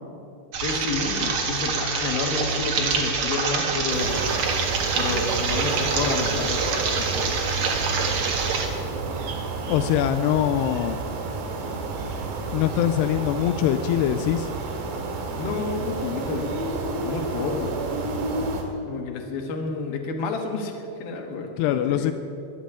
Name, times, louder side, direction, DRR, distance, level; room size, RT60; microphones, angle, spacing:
sound 1, 0.5-8.7, right 4 dB, 55° right, 2.1 m, -26 dB
voice 1, 0.6-4.2 5.0-7.3 15.4-16.5 17.0-17.7 18.9-22.1, left 4 dB, 65° left, 4 dB, 3.1 m, -30 dB
sound 2, 3.9-18.6, right 3 dB, 75° right, 4.1 m, -30 dB
voice 2, 9.7-11.0 12.5-14.5 21.6-22.1, left 11 dB, 85° left, 9 dB, 2.4 m, -23 dB
21.5 x 7.5 x 8.7 m, 2.7 s
omnidirectional pair, 5.3 m